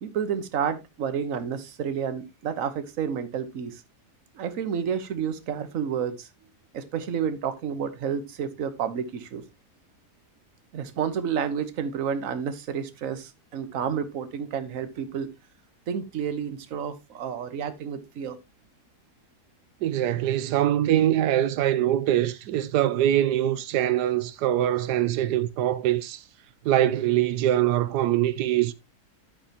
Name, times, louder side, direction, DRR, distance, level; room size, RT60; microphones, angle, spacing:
voice 1, 0.0-3.8 4.3-6.3 6.7-9.4 10.7-15.3 15.9-18.4, right 7 dB, 60° right, 1.4 m, -30 dB
voice 2, 19.8-26.2 26.6-28.7, right 12 dB, 90° right, 1.3 m, -23 dB
9.9 x 8.6 x 2.9 m
omnidirectional pair, 1.7 m